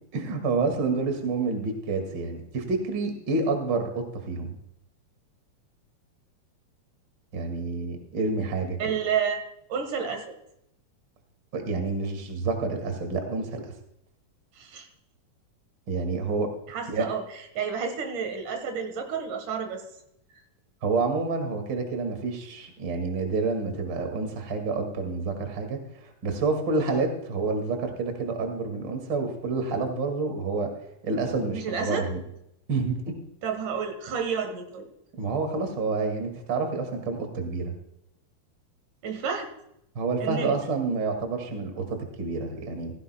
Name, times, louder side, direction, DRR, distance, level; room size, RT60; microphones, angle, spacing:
voice 1, 0.1-4.5 7.3-8.8 11.5-13.7 15.9-16.5 16.9-17.0 20.8-30.7 31.0-32.2 32.7-33.1 35.2-37.7 39.9-42.9, right 3 dB, 35° right, 5 dB, 2.5 m, -28 dB
voice 2, 8.8-9.4 9.7-10.2 14.6-14.9 16.7-17.2 17.6-19.8 31.5-32.1 33.4-34.9 39.0-39.5 40.2-40.6, right 6 dB, 75° right, 6 dB, 2.9 m, -30 dB
16.0 x 15.5 x 2.3 m, 0.79 s
omnidirectional pair, 3.7 m